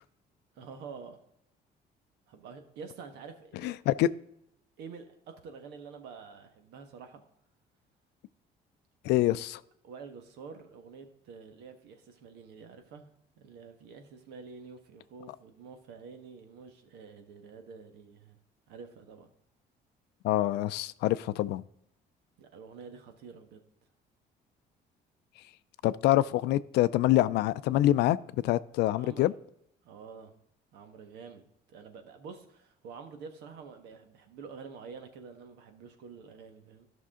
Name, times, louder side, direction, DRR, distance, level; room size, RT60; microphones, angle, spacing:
voice 1, 0.6-1.2 2.3-3.7 4.8-7.2 9.8-13.1 13.4-18.4 18.7-19.3 22.4-23.6 28.9-29.3 29.8-30.3 30.7-31.4 31.7-36.9, right 5 dB, 90° right, 1.4 m, -48 dB
voice 2, 3.6-4.1 9.0-9.6 20.2-21.6 25.8-28.2 28.4-29.3, left 15 dB, 80° left, 0.4 m, -25 dB
13.0 x 6.0 x 3.7 m
cardioid pair, 110°, 17 cm